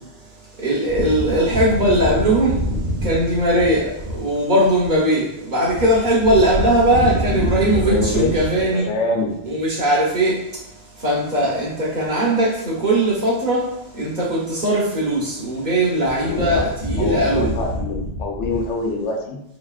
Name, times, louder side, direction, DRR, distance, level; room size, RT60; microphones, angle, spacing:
voice 1, 0.6-8.8 9.4-10.4 11.0-13.6 14.0-17.8, right 1 dB, 45° right, -4 dB, 1.0 m, -19 dB
voice 2, 7.8-8.3 8.7-9.3 16.2-16.6 17.0-19.4, left 3 dB, 85° left, 1 dB, 1.0 m, -25 dB
4.7 x 3.0 x 2.4 m, 0.83 s
omnidirectional pair, 1.2 m